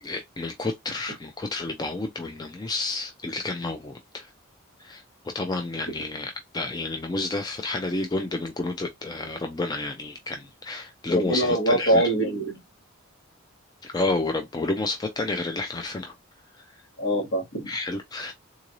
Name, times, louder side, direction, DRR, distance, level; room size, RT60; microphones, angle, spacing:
voice 1, 0.0-4.3 4.8-5.0 5.3-12.0 13.8-16.1 16.6-16.8 17.7-18.3, left 2 dB, 20° left, 0.3 m, -30 dB
voice 2, 11.1-12.6 17.0-17.7, right 1 dB, 60° left, 1.9 m, -23 dB
3.8 x 2.5 x 3.0 m
head